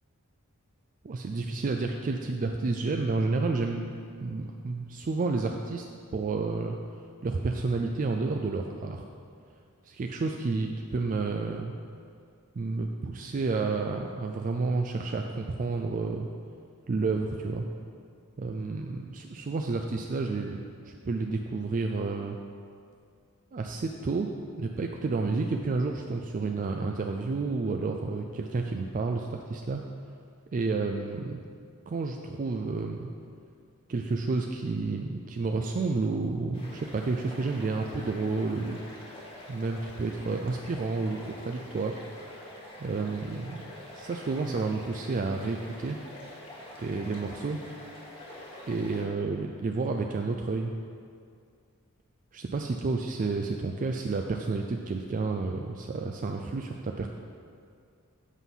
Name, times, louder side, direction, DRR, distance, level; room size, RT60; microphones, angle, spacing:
voice 1, 1.0-3.9 4.2-5.9 6.1-6.7 7.2-9.0 9.8-11.7 12.6-16.3 16.9-17.7 18.4-22.4 23.5-24.3 24.6-29.8 30.5-31.4 31.9-33.1 33.9-38.8 39.5-42.0 42.8-46.0 46.8-47.6 48.7-50.7 52.3-57.1, right 3 dB, 35° right, 3 dB, 0.4 m, -30 dB
sound 1, 36.5-49.1, left 1 dB, 25° left, 1.5 m, -46 dB
8.2 x 5.5 x 5.7 m, 2.3 s
head